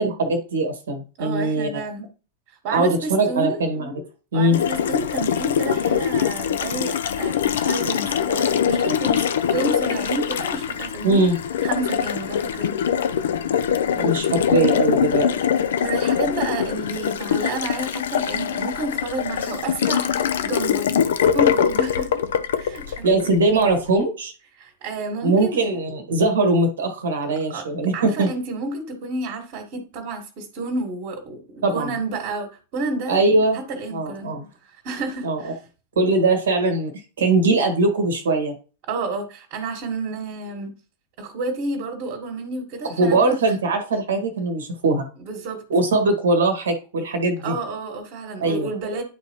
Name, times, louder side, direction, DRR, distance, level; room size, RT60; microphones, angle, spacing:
voice 1, 0.0-1.7 2.7-3.9 4.3-4.6 11.0-11.3 13.9-15.3 23.0-24.3 25.2-28.3 31.6-31.9 33.1-33.6 33.9-34.4 35.2-35.5 35.9-36.9 37.2-38.5 42.8-45.1 45.7-47.5 48.4-48.7, right 2 dB, 65° right, 6 dB, 1.6 m, -21 dB
voice 2, 1.2-2.1 2.5-3.6 4.3-9.2 9.5-11.2 11.6-12.8 15.8-20.1 20.4-22.2 22.6-23.3 24.6-25.6 27.2-27.7 27.9-33.2 33.5-34.3 34.6-35.6 38.9-40.7 41.2-43.3 45.2-45.6 47.4-49.0, right 2 dB, 45° right, 2 dB, 1.8 m, -30 dB
Water tap faucet, 4.5-23.7, left 8 dB, 60° left, 0.6 m, -23 dB
10.5 x 4.1 x 3.1 m, 0.36 s
figure-of-eight pair, 90°, 0 cm